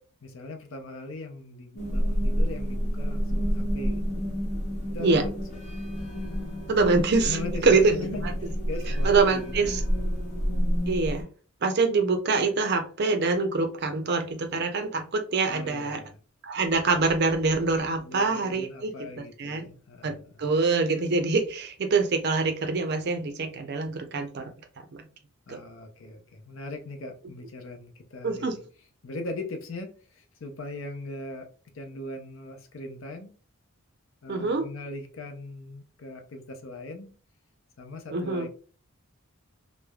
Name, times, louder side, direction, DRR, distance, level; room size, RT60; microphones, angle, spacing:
voice 1, 0.2-4.0 4.9-5.3 7.2-10.0 15.5-16.2 18.0-20.5 25.5-28.6 29.0-31.5 31.7-33.3 34.2-37.1 37.8-38.5, left 2 dB, 60° left, 0.6 m, -40 dB
sound 1, 1.8-11.2, equal, 35° left, 0.9 m, -29 dB
voice 2, 6.7-7.9 9.0-9.8 10.9-11.3 11.6-16.0 16.4-18.9 19.4-19.7 20.0-24.5 24.9-25.1 25.5-25.6 28.2-28.5 34.3-34.6 38.1-38.5, right 3 dB, 50° right, 0.5 m, -25 dB
3.2 x 2.0 x 2.2 m
head